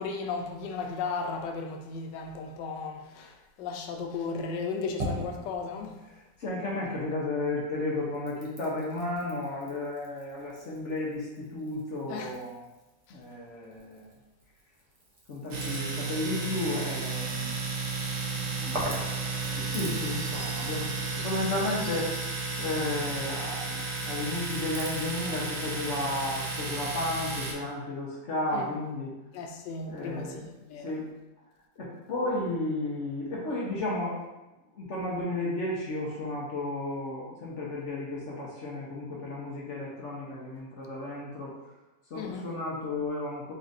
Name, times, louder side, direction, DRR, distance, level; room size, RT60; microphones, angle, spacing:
voice 1, 0.0-6.0 12.1-12.3 13.1-13.2 18.3-18.6 28.5-28.7 29.3-30.9 42.1-42.5, left 4 dB, 85° left, 3 dB, 1.2 m, -35 dB
sound 1, 4.4-7.1 7.4-20.7, right 1 dB, 50° right, 0.4 m, -44 dB
voice 2, 6.4-12.6 13.1-14.1 15.3-17.8 18.6-22.1 22.6-29.1 29.9-30.5 30.8-31.1 31.8-34.2 34.8-41.5 42.1-43.5, left 2 dB, 55° left, -5 dB, 0.9 m, -33 dB
Domestic sounds home sounds, 15.5-27.5, right 3 dB, 85° right, 1.5 m, -33 dB
Chirp tweet, 19.7-23.7 24.0-25.2, right 4 dB, 65° right, 1.1 m, -47 dB
4.2 x 2.4 x 3.9 m, 1.0 s
omnidirectional pair, 1.8 m